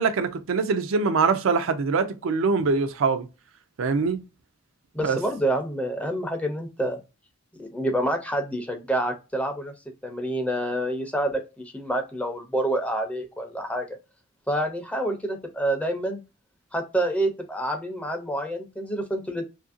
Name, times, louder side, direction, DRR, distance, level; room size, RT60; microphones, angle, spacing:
voice 1, 0.0-3.3 3.8-4.2 5.0-5.2, right 4 dB, 80° right, 0.4 m, -23 dB
voice 2, 4.9-7.0 7.6-9.7 10.0-13.8 14.5-16.2 16.7-19.4, right 1 dB, 5° left, 0.5 m, -27 dB
2.7 x 2.5 x 2.4 m
head